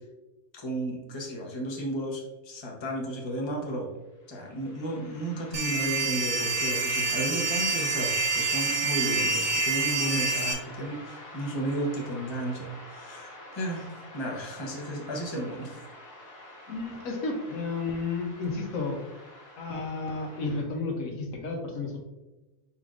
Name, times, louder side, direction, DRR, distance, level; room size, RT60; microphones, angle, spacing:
voice 1, 0.5-3.9 4.3-15.8, right 1 dB, 25° left, 0 dB, 0.8 m, -33 dB
sound 1, 4.2-20.6, left 1 dB, 65° left, 1.4 m, -47 dB
sound 2, 5.5-10.5, right 3 dB, 75° right, 1.3 m, -27 dB
voice 2, 16.7-19.0 19.6-22.0, left 3 dB, 90° left, 2 dB, 1.3 m, -32 dB
5.0 x 4.2 x 2.5 m, 1.1 s
omnidirectional pair, 1.4 m